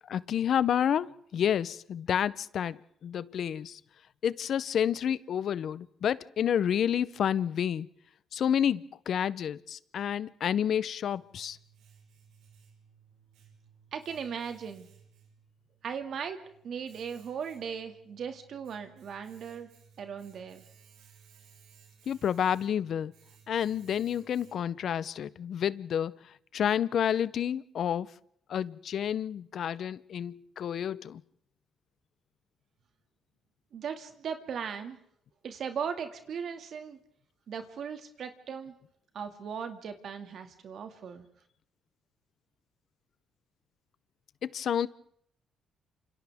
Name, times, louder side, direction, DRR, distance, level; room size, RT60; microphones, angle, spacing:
voice 1, 0.1-2.8 3.0-3.8 4.2-7.9 8.3-11.6 22.1-23.1 23.5-26.2 26.5-28.1 28.5-31.2 44.4-44.9, left 9 dB, 65° left, 0.8 m, -29 dB
Domestic sounds home sounds, 10.6-24.9, right 7 dB, 90° right, 4.8 m, -60 dB
voice 2, 13.9-14.9 15.8-19.7 20.0-20.6 33.7-35.0 35.4-37.0 37.5-38.7 39.1-41.2, right 7 dB, 65° right, 2.2 m, -38 dB
29.0 x 27.5 x 3.6 m
cardioid pair, 90°, 0 cm